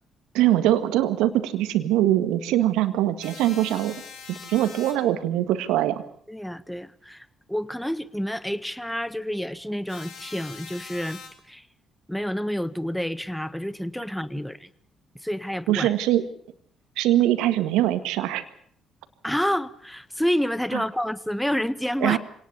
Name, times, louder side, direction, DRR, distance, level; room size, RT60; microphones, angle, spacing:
voice 1, 0.3-4.0 4.3-6.0 15.7-16.2 17.0-18.4 20.7-20.8 22.0-22.2, right 13 dB, 75° right, 10 dB, 1.8 m, -22 dB
sound 1, 3.2-4.9 9.9-11.3, left 5 dB, 70° left, 4.5 m, -42 dB
voice 2, 6.3-11.2 11.5-11.6 12.1-14.7 15.2-15.9 19.2-22.2, equal, 5° left, 15 dB, 1.6 m, -29 dB
25.5 x 18.5 x 7.0 m, 0.64 s
hypercardioid pair, 45°, 0 cm